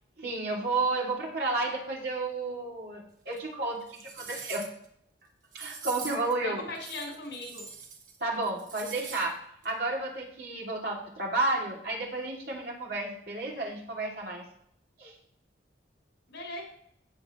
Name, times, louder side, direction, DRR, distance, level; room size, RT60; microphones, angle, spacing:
voice 1, 0.2-4.7 5.5-6.6 8.2-9.4 9.6-14.4 15.0-15.1, right 2 dB, 65° right, -2 dB, 2.8 m, -32 dB
sound 1, 3.3-3.4 3.9-4.9 5.5-6.3 6.8-8.2 8.4-9.3 9.6-9.7, right 6 dB, 45° right, 1.4 m, -43 dB
voice 2, 6.4-7.7 16.3-16.6, left 2 dB, 85° left, 0 dB, 4.4 m, -39 dB
15.5 x 6.1 x 3.1 m, 0.69 s
head